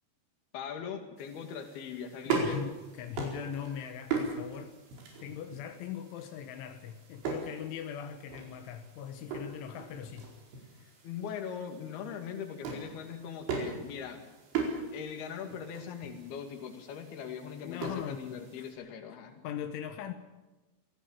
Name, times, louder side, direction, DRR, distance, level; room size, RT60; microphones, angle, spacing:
voice 1, 0.5-2.6 11.0-14.3 14.9-19.5, left 7 dB, 60° left, 5 dB, 3.9 m, -41 dB
sound 1, 1.2-18.7, right 5 dB, 70° right, 6.8 m, -39 dB
voice 2, 2.3-4.8 5.2-10.3 10.7-10.9 17.6-18.9 19.4-20.1, left 9 dB, 85° left, 7 dB, 3.6 m, -40 dB
26.5 x 17.5 x 7.3 m, 1.1 s
omnidirectional pair, 5.4 m